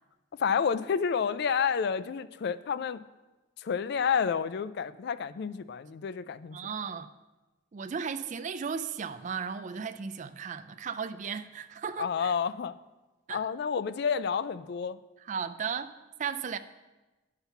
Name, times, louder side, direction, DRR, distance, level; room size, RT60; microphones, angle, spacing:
voice 1, 0.4-3.0 3.6-6.6 12.0-12.7 13.3-15.0, left 6 dB, 55° left, 0.3 m, -29 dB
voice 2, 6.5-7.1 7.7-12.3 13.3-13.4 15.2-16.6, right 6 dB, 35° right, 0.3 m, -35 dB
9.8 x 5.7 x 5.6 m
head